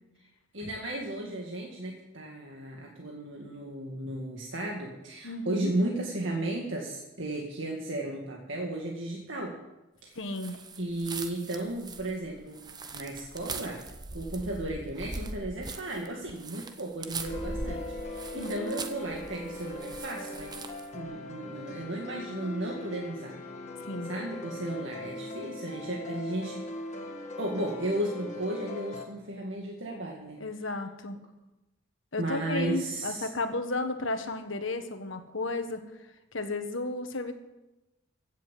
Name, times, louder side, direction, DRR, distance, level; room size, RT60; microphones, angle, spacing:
voice 1, 0.5-9.5 10.0-10.2 10.8-12.6 12.9-13.8 14.1-20.5 20.9-23.4 24.0-26.6 27.4-30.4 32.2-33.3, right 1 dB, 65° right, -1 dB, 2.1 m, -34 dB
voice 2, 5.2-5.7 10.1-10.6 18.3-18.8 23.9-24.1 30.4-31.2 32.1-35.8 36.3-37.3, left 2 dB, 70° left, 7 dB, 1.5 m, -33 dB
sound 1, 10.3-20.9, right 3 dB, 20° right, 0.8 m, -41 dB
sound 2, 17.3-29.1, left 2 dB, 35° left, 1.6 m, -40 dB
16.0 x 7.6 x 7.6 m, 1.0 s
head